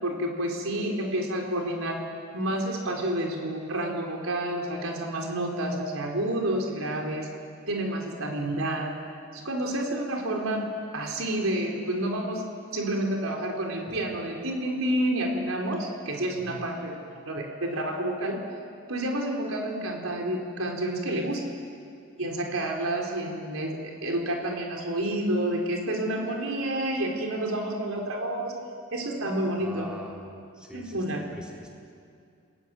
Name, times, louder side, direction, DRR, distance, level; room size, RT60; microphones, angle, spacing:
voice 1, 0.0-2.0 2.3-7.3 7.7-8.9 9.3-10.6 10.9-12.4 12.7-17.0 17.2-18.4 18.9-21.4 22.2-28.5 28.9-29.9 30.7-31.2, right 1 dB, 85° right, 1 dB, 4.3 m, -29 dB
voice 2, 29.6-30.2 30.6-31.7, equal, 5° right, -2 dB, 4.0 m, -44 dB
29.0 x 21.0 x 9.1 m, 2.3 s
head